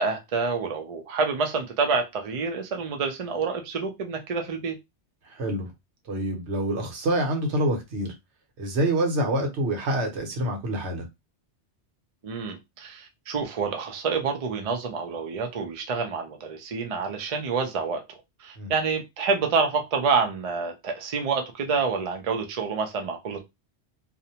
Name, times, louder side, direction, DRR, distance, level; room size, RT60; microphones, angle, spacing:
voice 1, 0.0-4.8 12.2-23.4, right 5 dB, 50° right, 0.4 m, -28 dB
voice 2, 5.3-5.7 6.1-8.1 8.6-11.0 18.6-18.7, right 1 dB, 75° right, 1.1 m, -26 dB
2.5 x 2.1 x 2.8 m
omnidirectional pair, 1.2 m